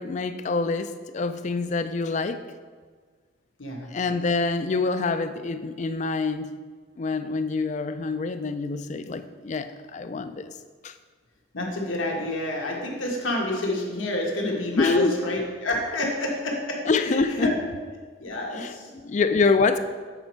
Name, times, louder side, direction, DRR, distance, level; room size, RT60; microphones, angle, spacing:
voice 1, 0.0-2.4 3.9-6.5 7.0-10.5 10.8-10.9 14.8-15.2 16.0-16.1 16.9-17.5 18.5-19.8, left 4 dB, 35° left, 10 dB, 0.3 m, -26 dB
voice 2, 11.5-16.8 17.0-17.6 18.2-18.9, left 1 dB, 85° left, -1 dB, 1.5 m, -28 dB
7.9 x 5.2 x 4.5 m, 1.5 s
head